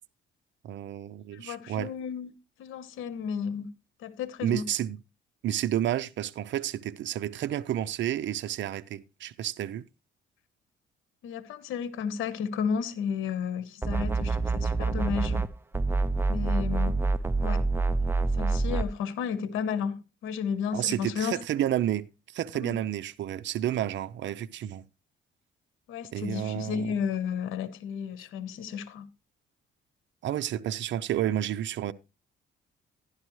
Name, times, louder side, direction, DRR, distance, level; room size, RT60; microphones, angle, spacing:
voice 1, 0.6-1.9 4.4-5.0 5.4-9.8 20.7-24.8 26.1-27.0 30.2-31.9, right 11 dB, 65° right, 0.6 m, -30 dB
voice 2, 1.3-2.3 2.6-3.7 4.0-4.6 11.2-15.5 16.3-17.0 17.4-17.6 18.4-21.3 22.5-22.8 25.9-29.1, left 7 dB, 85° left, 1.1 m, -33 dB
sound 1, 13.8-15.5 15.7-18.9, right 3 dB, 10° right, 0.6 m, -26 dB
11.5 x 11.5 x 3.1 m
cardioid pair, 90°, 20 cm